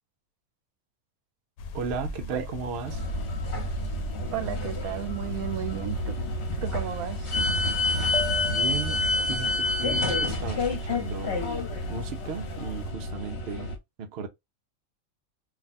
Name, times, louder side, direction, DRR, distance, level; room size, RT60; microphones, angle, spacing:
sound 1, 1.6-12.9, left 4 dB, 85° left, 1.0 m, -40 dB
voice 1, 1.7-3.1 8.5-11.4 11.9-13.7 14.0-14.3, right 6 dB, 60° right, 0.7 m, -35 dB
sound 2, 2.8-13.8, left 2 dB, 50° left, 1.2 m, -29 dB
voice 2, 4.3-6.2 6.6-7.3, right 11 dB, 85° right, 1.1 m, -33 dB
2.7 x 2.3 x 3.9 m
omnidirectional pair, 1.5 m